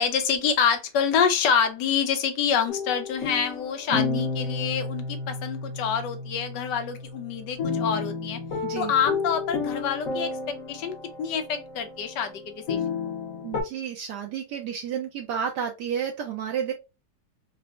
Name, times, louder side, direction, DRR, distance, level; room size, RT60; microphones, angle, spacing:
voice 1, 0.0-8.4 8.8-12.9, left 7 dB, 80° left, 1.3 m, -26 dB
sound 1, 2.7-13.6, left 4 dB, 60° left, 1.1 m, -32 dB
voice 2, 3.9-4.3 8.6-8.9 13.4-16.7, right 8 dB, 75° right, 1.2 m, -31 dB
4.0 x 2.1 x 2.3 m
omnidirectional pair, 1.9 m